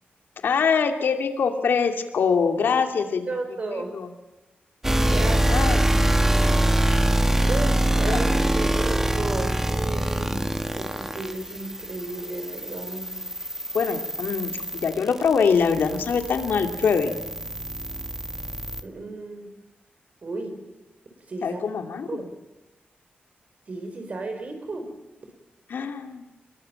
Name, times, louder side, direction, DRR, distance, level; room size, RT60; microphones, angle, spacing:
voice 1, 0.4-3.3 3.7-4.1 5.1-5.9 8.1-8.2 13.7-17.2 21.4-22.2 25.7-26.2, left 6 dB, 80° left, 5 dB, 2.5 m, -24 dB
voice 2, 3.3-3.9 5.0-5.5 7.4-13.6 18.8-19.5 20.2-20.6 21.3-21.6 22.1-22.3 23.7-24.9, right 3 dB, 40° right, 6 dB, 4.9 m, -34 dB
sound 1, 4.8-18.8, right 1 dB, 10° right, 1.4 m, -24 dB
25.0 x 21.5 x 9.0 m, 1.0 s
wide cardioid pair, 140°, 3 cm